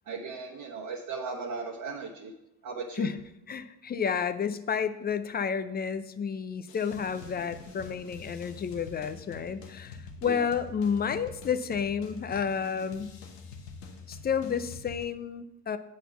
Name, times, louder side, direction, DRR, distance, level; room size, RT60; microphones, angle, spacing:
voice 1, 0.1-2.3 2.6-3.1 10.2-10.5, right 4 dB, 45° right, -3 dB, 1.2 m, -37 dB
voice 2, 3.5-13.1 14.1-15.8, left 7 dB, 20° left, 11 dB, 0.4 m, -31 dB
sound 1, 6.7-15.0, left 4 dB, 85° left, 1.1 m, -46 dB
8.3 x 4.1 x 6.8 m, 0.86 s
hypercardioid pair, 75°, 47 cm